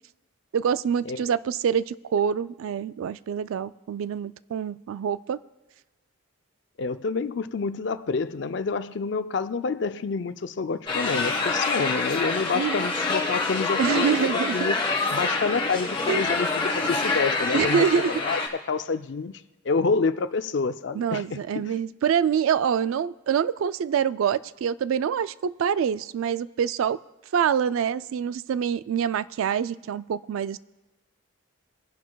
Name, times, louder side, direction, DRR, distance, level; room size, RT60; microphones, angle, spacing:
voice 1, 0.5-5.4 12.5-12.9 13.8-14.6 16.1-16.3 17.5-18.1 20.9-27.0 27.3-30.6, right 7 dB, 75° right, 0.3 m, -25 dB
voice 2, 6.8-14.8 15.1-19.3 19.6-21.8, left 4 dB, 55° left, 0.4 m, -28 dB
sound 1, 10.9-18.5, left 3 dB, 25° left, 1.2 m, -26 dB
22.0 x 10.5 x 2.3 m
head